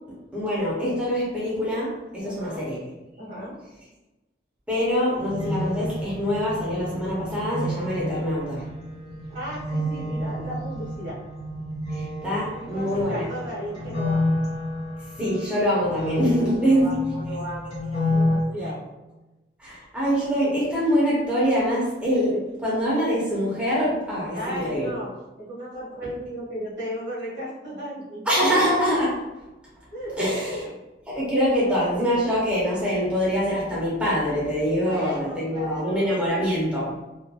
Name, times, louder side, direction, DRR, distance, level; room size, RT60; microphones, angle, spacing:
voice 1, 0.3-2.8 4.7-8.6 11.9-13.2 15.2-16.9 19.6-22.3 22.6-24.9 28.3-29.2 30.2-30.6 31.1-36.9, equal, 5° right, -8 dB, 0.8 m, -24 dB
voice 2, 2.2-2.6 3.2-3.5 9.3-11.2 12.5-14.3 16.4-18.8 24.3-25.1 25.4-28.2 29.9-30.7 34.8-36.1, equal, 80° right, -7 dB, 1.3 m, -35 dB
sound 1, 5.2-18.4, left 1 dB, 30° left, 0.9 m, -29 dB
2.9 x 2.5 x 2.2 m, 1.1 s
head